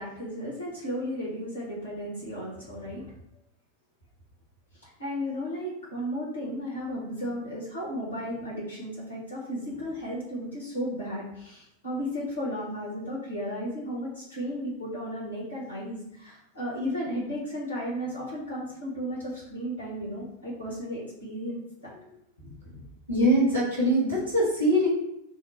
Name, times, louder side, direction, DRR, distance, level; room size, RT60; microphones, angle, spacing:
voice 1, 0.0-3.1 4.8-21.9 22.4-22.8, equal, 75° left, -5 dB, 1.4 m, -34 dB
voice 2, 23.1-24.9, equal, 70° right, -5 dB, 1.6 m, -22 dB
4.4 x 2.1 x 4.4 m, 0.81 s
figure-of-eight pair, 90°, 0 cm